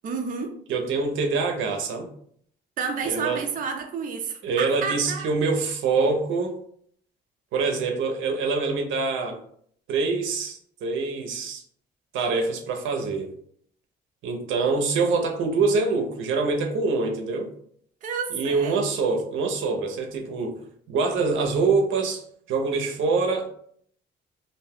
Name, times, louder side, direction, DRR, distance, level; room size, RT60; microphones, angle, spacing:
voice 1, 0.0-0.5 2.8-5.3 18.0-18.8, right 5 dB, 45° right, 4 dB, 0.5 m, -30 dB
voice 2, 0.7-2.1 3.0-3.4 4.4-6.6 7.5-9.4 9.9-11.6 12.1-13.3 14.2-17.5 18.3-20.6 20.9-22.2 22.5-23.5, right 4 dB, 80° right, 3 dB, 0.6 m, -25 dB
2.6 x 2.1 x 3.4 m, 0.62 s
cardioid pair, 90°, 20 cm